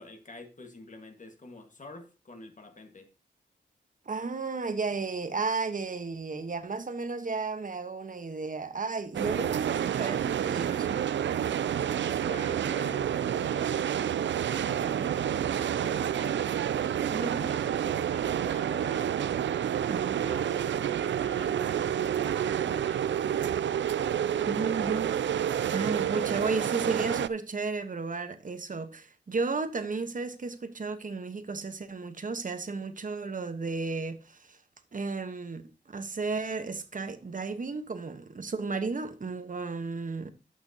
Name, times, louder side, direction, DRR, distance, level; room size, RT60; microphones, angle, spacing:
voice 1, 0.0-3.1 12.3-19.2 20.2-23.1, left 2 dB, 40° left, 1.6 m, -47 dB
voice 2, 4.1-11.0 14.9-15.1 17.1-17.4 19.9-20.3 24.4-25.2 25.7-34.6 34.9-40.3, right 4 dB, 45° right, 1.2 m, -33 dB
sound 1, 9.1-27.3, right 9 dB, 80° right, 0.4 m, -29 dB
13.0 x 6.1 x 2.8 m
wide cardioid pair, 85°, 19 cm